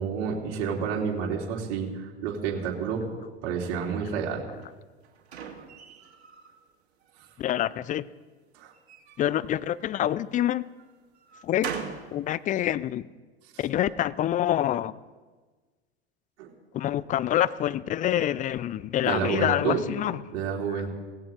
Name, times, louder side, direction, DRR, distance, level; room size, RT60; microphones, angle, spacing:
voice 1, 0.0-3.1 3.4-4.4 8.5-8.7 16.4-16.5 19.0-19.8 20.3-20.9, right 6 dB, 50° right, -1 dB, 3.2 m, -29 dB
sound 1, 4.6-6.5 7.0-7.7 8.7-10.2 10.8-12.1, right 7 dB, 70° right, 2.2 m, -41 dB
voice 2, 7.4-8.1 9.2-10.6 11.4-11.7 12.1-13.0 13.6-14.9 16.7-20.2 20.7-20.9, left 12 dB, 25° left, 18 dB, 0.4 m, -26 dB
17.5 x 16.5 x 3.9 m, 1.3 s
figure-of-eight pair, 85°, 33 cm